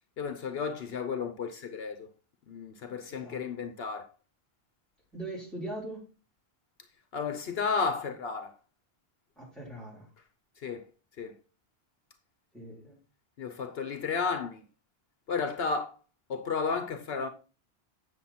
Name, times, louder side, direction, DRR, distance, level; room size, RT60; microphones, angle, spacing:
voice 1, 0.2-2.1 2.5-4.1 7.1-8.5 10.6-10.8 11.2-11.4 13.4-14.6 15.3-15.9 16.3-17.3, left 5 dB, 70° left, 1.0 m, -33 dB
voice 2, 3.1-3.4 5.1-6.0 9.4-10.1 12.5-13.0, right 2 dB, ahead, 3.9 m, -40 dB
8.8 x 6.7 x 4.2 m
omnidirectional pair, 1.1 m